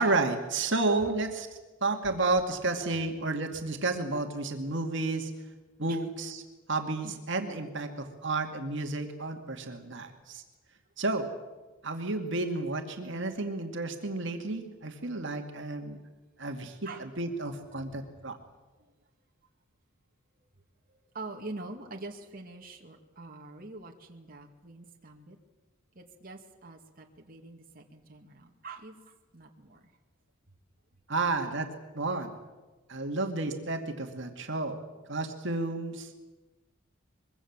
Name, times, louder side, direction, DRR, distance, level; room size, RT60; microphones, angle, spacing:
voice 1, 0.0-1.5 1.8-5.3 5.8-6.4 6.7-10.4 11.0-11.3 11.8-16.0 16.4-18.4 31.1-32.4 32.9-34.8 35.1-36.2, right 2 dB, 65° right, 4 dB, 2.3 m, -31 dB
voice 2, 17.7-18.1 18.7-18.9 20.9-25.4 25.9-29.8, right 2 dB, 45° right, 1 dB, 2.3 m, -45 dB
24.5 x 23.0 x 7.4 m, 1.2 s
head